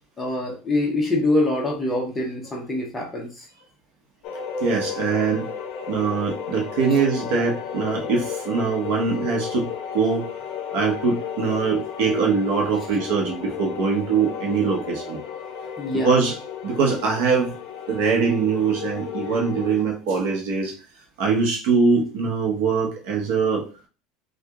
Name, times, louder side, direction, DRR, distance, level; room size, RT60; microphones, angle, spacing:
voice 1, 0.2-3.3 15.8-16.2, left 2 dB, 10° left, 0 dB, 0.7 m, -24 dB
sound 1, 4.2-19.8, left 7 dB, 45° left, 0.5 m, -33 dB
voice 2, 4.6-5.5 5.9-9.7 9.9-10.3 10.7-15.2 16.0-16.4 16.6-17.5 17.9-20.7 21.2-23.6, right 5 dB, 65° right, 1 dB, 1.0 m, -22 dB
2.9 x 2.6 x 3.5 m, 0.35 s
cardioid pair, 175°, 0 cm